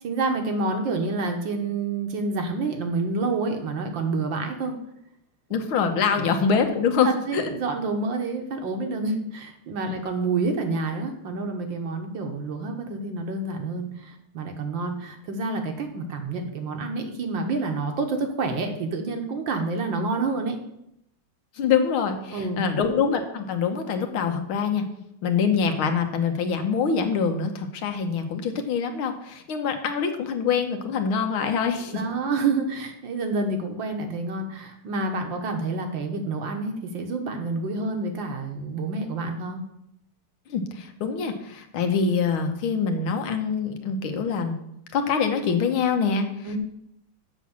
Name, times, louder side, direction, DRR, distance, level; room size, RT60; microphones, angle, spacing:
voice 1, 0.0-4.8 6.1-6.3 7.0-20.6 22.3-22.6 31.9-39.6 46.5-46.6, right 3 dB, 65° right, 4 dB, 1.8 m, -28 dB
voice 2, 5.5-7.5 9.9-10.0 21.6-24.9 25.2-32.0 40.5-44.5 44.9-46.6, left 6 dB, 75° left, 5 dB, 1.8 m, -25 dB
7.1 x 6.1 x 7.2 m, 0.79 s
omnidirectional pair, 2.4 m